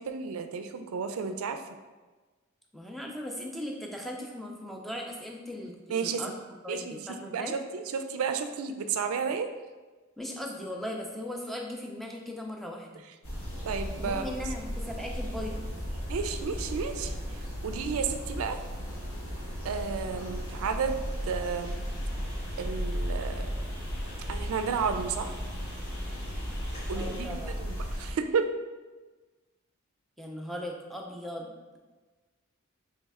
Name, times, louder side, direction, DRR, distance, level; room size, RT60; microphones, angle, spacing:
voice 1, 0.0-1.6 5.9-6.2 6.7-7.0 7.3-9.5 13.6-14.3 16.1-18.6 19.6-21.7 22.6-23.5 24.3-25.3 26.9-27.3 27.6-28.5, right 5 dB, 75° right, 7 dB, 0.3 m, -32 dB
voice 2, 2.7-7.6 10.2-13.0 14.0-15.7 26.9-27.5 30.2-31.8, left 1 dB, ahead, 0 dB, 0.3 m, -38 dB
sound 1, 13.2-28.1, equal, 80° left, 1.0 m, -35 dB
sound 2, 19.4-27.3, left 1 dB, 50° left, 0.9 m, -51 dB
3.2 x 3.2 x 3.5 m, 1.3 s
head